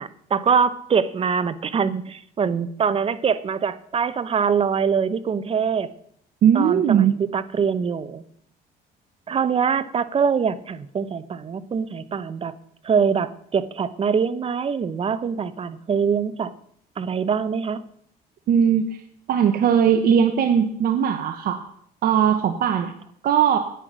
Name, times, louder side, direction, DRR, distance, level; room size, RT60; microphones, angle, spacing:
voice 1, 0.0-5.9 6.5-8.2 9.3-12.5 12.8-16.5 17.0-17.9, right 6 dB, 35° right, 14 dB, 0.9 m, -24 dB
voice 2, 6.4-7.1 18.5-18.8 19.3-21.6 22.0-22.9 23.2-23.6, right 8 dB, 60° right, 7 dB, 1.1 m, -19 dB
10.0 x 9.8 x 6.2 m, 0.68 s
cardioid pair, 110°, 17 cm